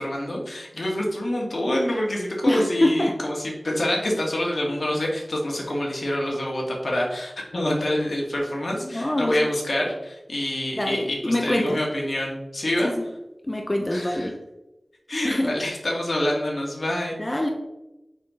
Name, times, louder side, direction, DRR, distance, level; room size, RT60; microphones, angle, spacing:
voice 1, 0.0-12.9 13.9-14.3 15.1-17.2, left 1 dB, 70° left, -1 dB, 2.0 m, -26 dB
voice 2, 2.5-3.1 8.8-9.4 10.8-11.8 12.8-12.9 13.5-14.3 15.2-15.5 17.2-17.5, left 1 dB, 30° left, 2 dB, 0.8 m, -24 dB
6.3 x 5.8 x 3.8 m, 0.95 s
wide cardioid pair, 45°, 0 cm